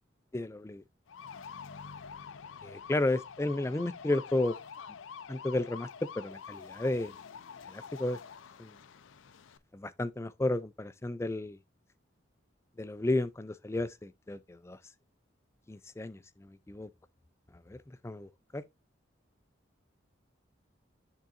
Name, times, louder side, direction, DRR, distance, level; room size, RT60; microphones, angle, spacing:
voice 1, 0.3-0.8 2.6-4.6 5.3-5.9 6.2-7.1 7.7-8.2 8.6-8.7 9.7-11.6 12.8-14.8 15.7-16.9 17.7-17.8 18.0-18.6, left 2 dB, 15° left, 0.3 m, -33 dB
sound 1, 1.1-9.6, left 6 dB, 80° left, 0.5 m, -47 dB
10.0 x 3.8 x 2.5 m
head